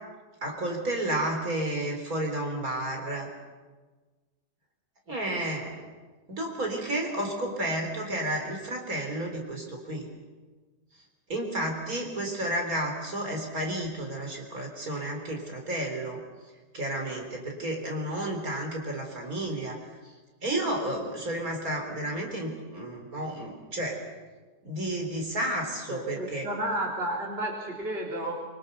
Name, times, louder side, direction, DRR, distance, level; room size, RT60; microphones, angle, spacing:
voice 1, 0.4-3.3 5.1-5.8 6.3-10.1 11.3-16.2 16.7-19.8 20.0-20.1 20.4-24.0 24.6-26.5, right 1 dB, 55° right, 2 dB, 4.4 m, -31 dB
voice 2, 25.9-28.3, right 1 dB, 35° right, -2 dB, 3.6 m, -32 dB
24.5 x 24.5 x 6.8 m, 1.3 s
omnidirectional pair, 1.8 m